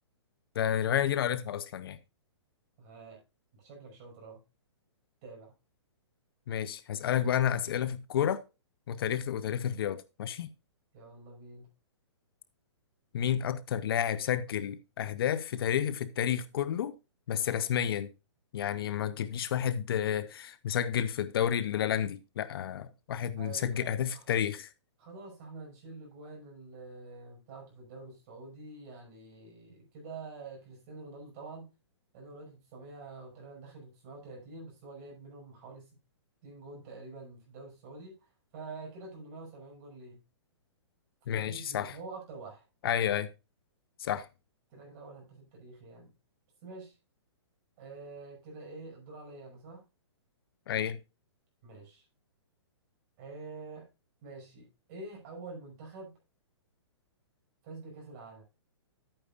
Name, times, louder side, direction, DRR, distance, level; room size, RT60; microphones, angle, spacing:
voice 1, 0.5-2.0 6.5-8.4 8.9-10.5 13.1-16.9 17.3-18.1 18.5-24.7 41.3-42.0 42.8-43.3 44.0-44.3 50.7-51.0, left 9 dB, 55° left, 0.7 m, -30 dB
voice 2, 2.8-3.2 3.5-4.4 5.2-5.5 10.9-11.7 23.4-24.2 25.0-31.7 32.1-36.0 36.4-38.3 38.5-40.2 41.3-42.7 44.7-46.1 46.6-47.0 47.8-49.8 51.6-52.0 53.2-53.9 54.2-56.1 57.6-58.4, right 3 dB, 35° right, 5.9 m, -47 dB
11.0 x 8.9 x 2.4 m
hypercardioid pair, 160°, 15 cm